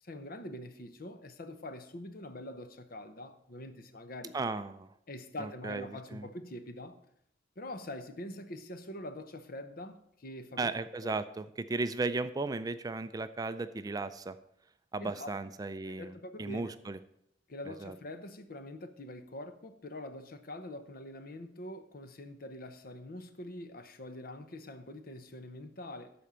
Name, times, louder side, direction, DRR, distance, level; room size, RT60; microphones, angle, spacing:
voice 1, 0.0-4.4 5.1-7.0 7.6-10.7 11.0-11.2 15.0-15.4 15.9-16.7 17.5-26.1, left 1 dB, 55° left, 0.9 m, -44 dB
voice 2, 4.3-4.9 5.4-6.3 10.6-14.4 14.9-17.0 17.7-18.0, right 3 dB, 20° right, 0.3 m, -36 dB
12.5 x 4.4 x 6.8 m
head